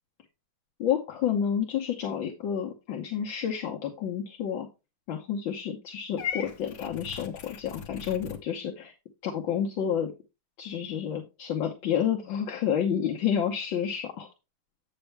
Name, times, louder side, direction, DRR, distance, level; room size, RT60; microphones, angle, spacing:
voice 1, 0.8-4.7 5.1-8.9 9.2-10.1 10.6-14.3, left 8 dB, 75° left, 0 dB, 1.7 m, -30 dB
Purr / Meow, 6.2-8.4, left 8 dB, 50° left, 1.0 m, -38 dB
8.1 x 6.7 x 3.3 m, 0.27 s
omnidirectional pair, 2.2 m